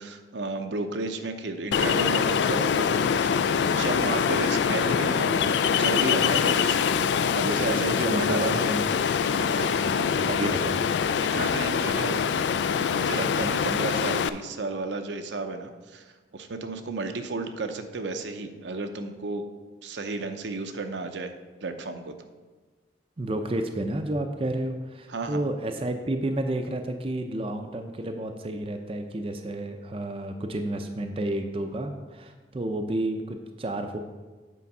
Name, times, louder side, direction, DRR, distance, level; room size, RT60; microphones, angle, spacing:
voice 1, 0.0-8.7 9.2-9.8 10.4-10.5 11.3-12.2 12.8-16.0 16.3-19.5 19.8-21.3 21.6-22.3 25.1-25.4, right 3 dB, 75° right, 7 dB, 0.7 m, -33 dB
Ocean, 1.7-14.3, left 7 dB, 75° left, 0.3 m, -24 dB
voice 2, 8.0-8.8 9.8-10.8 23.2-34.0, right 1 dB, 30° right, 5 dB, 0.5 m, -31 dB
8.4 x 4.6 x 5.3 m, 1.3 s
head